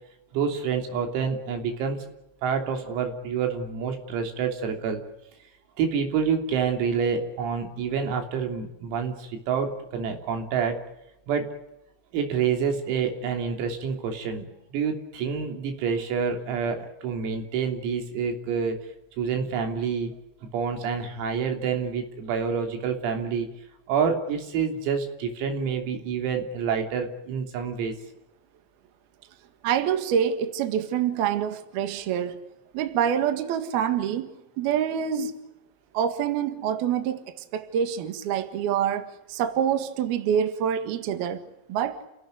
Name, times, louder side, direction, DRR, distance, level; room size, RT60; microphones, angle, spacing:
voice 1, 0.3-2.0 2.4-5.0 5.8-10.8 11.3-11.5 12.1-18.8 19.2-20.1 20.4-23.5 23.9-28.0, right 6 dB, 85° right, 5.9 m, -28 dB
voice 2, 29.6-32.4 32.7-35.3 35.9-37.2 37.5-41.4 41.7-42.0, right 8 dB, 60° right, 3.1 m, -26 dB
30.0 x 17.0 x 9.5 m
omnidirectional pair, 5.9 m